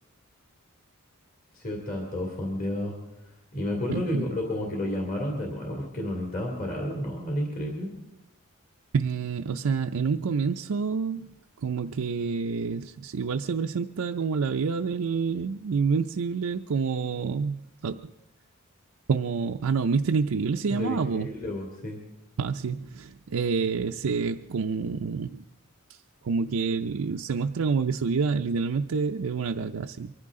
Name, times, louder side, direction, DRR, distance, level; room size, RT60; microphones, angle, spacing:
voice 1, 1.5-2.9 3.5-7.9 20.7-22.0, left 1 dB, 40° left, 0 dB, 2.7 m, -31 dB
voice 2, 3.9-4.2 8.9-11.3 11.6-18.1 19.1-21.3 22.4-25.4 25.9-26.0 26.2-30.1, right 5 dB, 80° right, 4 dB, 0.5 m, -28 dB
23.5 x 14.5 x 3.7 m, 0.90 s
head